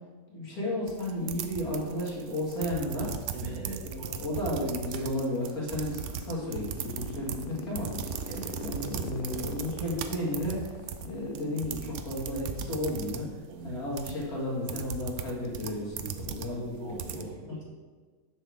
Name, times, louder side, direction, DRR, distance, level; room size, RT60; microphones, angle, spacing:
voice 1, 0.3-3.1 3.8-7.9 8.2-8.3 8.6-10.7 11.0-13.3 13.6-17.5, left 1 dB, 85° left, -5 dB, 2.5 m, -33 dB
sound 1, 0.9-17.2, right 7 dB, 65° right, 0.8 m, -38 dB
voice 2, 3.3-4.1 8.3-8.5 13.5-13.8 16.8-17.8, right 3 dB, 90° right, -2 dB, 1.9 m, -41 dB
sound 2, 5.3-11.8, left 6 dB, 65° left, 0.5 m, -42 dB
7.1 x 3.5 x 6.3 m, 1.4 s
omnidirectional pair, 1.5 m